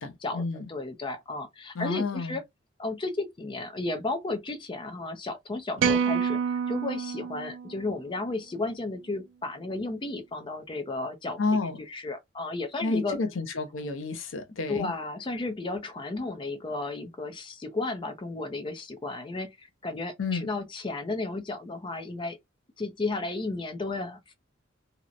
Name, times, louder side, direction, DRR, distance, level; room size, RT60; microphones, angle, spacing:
voice 1, 0.0-0.7 1.8-2.4 11.4-11.8 12.8-14.9 20.2-20.5, left 3 dB, 85° left, 0.6 m, -30 dB
voice 2, 0.7-2.4 2.8-13.2 14.7-22.4 22.8-24.3, left 2 dB, 25° left, 0.4 m, -33 dB
sound 1, 5.8-8.2, right 6 dB, 65° right, 0.3 m, -28 dB
2.8 x 2.0 x 2.4 m
head